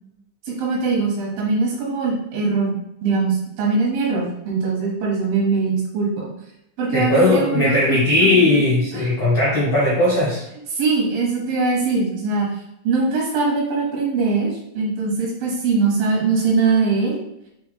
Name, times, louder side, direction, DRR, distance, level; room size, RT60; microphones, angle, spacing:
voice 1, 0.5-6.3 6.8-8.3 8.9-9.0 10.7-12.5 12.8-17.2, right 4 dB, 90° right, -3 dB, 3.0 m, -21 dB
voice 2, 6.9-10.4, left 2 dB, 70° left, -7 dB, 1.0 m, -18 dB
7.3 x 3.0 x 2.2 m, 0.82 s
omnidirectional pair, 3.9 m